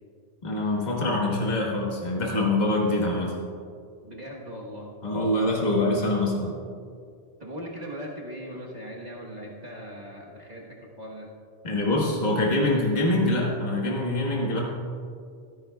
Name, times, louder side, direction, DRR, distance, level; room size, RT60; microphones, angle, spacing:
voice 1, 0.4-3.3 5.0-6.5 11.6-14.6, left 2 dB, 40° left, -2 dB, 1.6 m, -24 dB
voice 2, 4.0-4.9 7.4-11.3, equal, 40° right, -3 dB, 1.4 m, -39 dB
15.0 x 13.0 x 2.3 m, 2.3 s
omnidirectional pair, 1.1 m